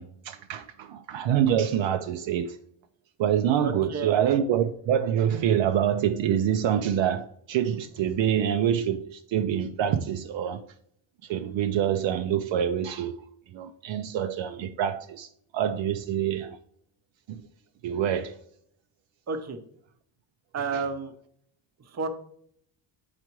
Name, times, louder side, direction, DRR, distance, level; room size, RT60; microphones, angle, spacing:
voice 1, 0.0-2.6 3.2-10.6 11.2-13.2 13.5-16.6 17.3-17.5 17.8-18.4 20.7-20.8, right 9 dB, 65° right, 0.6 m, -26 dB
voice 2, 3.6-4.2 19.3-19.6 20.5-21.1 21.9-22.1, right 4 dB, 30° right, 0.8 m, -31 dB
8.1 x 4.9 x 3.0 m
cardioid pair, 120°, 50 cm